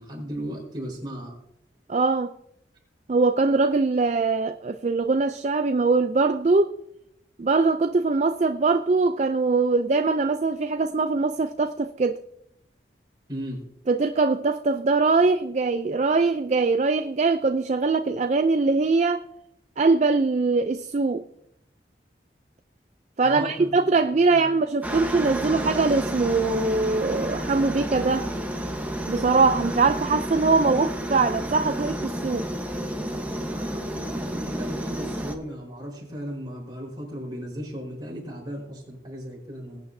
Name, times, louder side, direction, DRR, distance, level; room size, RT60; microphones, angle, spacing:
voice 1, 0.0-1.4 13.3-13.6 23.2-24.0 24.3-24.5 33.5-39.8, equal, 25° right, 4.4 m, -36 dB
voice 2, 1.9-2.3 3.1-6.8 7.4-12.2 13.9-19.2 19.8-21.2 23.2-28.3 29.1-32.5, right 3 dB, 40° right, 0.4 m, -22 dB
Aircraft, 24.8-35.4, equal, 10° right, 1.1 m, -31 dB
21.0 x 8.8 x 2.7 m
head